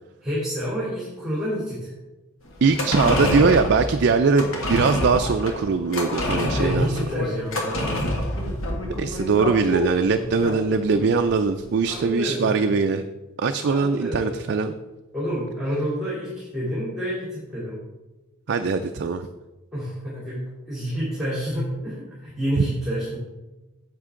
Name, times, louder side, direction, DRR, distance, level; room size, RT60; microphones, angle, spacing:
voice 1, 0.2-1.9 6.5-8.1 10.2-10.3 11.9-12.7 13.6-14.5 15.1-17.8 19.7-23.2, equal, ahead, -9 dB, 3.0 m, -28 dB
sound 1, 2.6-11.2 11.5-11.6, left 1 dB, 65° left, 1.8 m, -27 dB
voice 2, 2.6-7.0 9.0-13.0 13.4-14.7 18.5-19.3, right 4 dB, 55° right, 7 dB, 0.4 m, -21 dB
9.6 x 7.5 x 3.7 m, 1.1 s
head